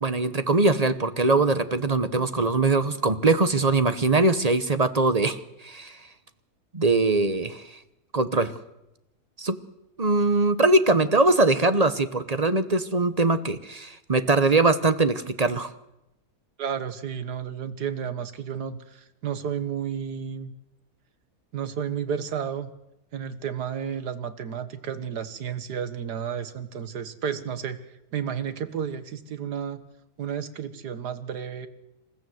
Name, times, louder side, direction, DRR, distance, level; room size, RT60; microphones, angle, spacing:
voice 1, 0.0-6.0 6.7-7.7 8.1-8.5 9.4-9.6 10.0-15.7, right 2 dB, 30° right, 12 dB, 0.9 m, -22 dB
voice 2, 16.6-20.5 21.5-22.7 23.1-27.8 28.1-29.8 30.2-31.7, right 8 dB, 85° right, 11 dB, 1.9 m, -32 dB
27.5 x 14.5 x 7.9 m, 0.90 s
omnidirectional pair, 1.7 m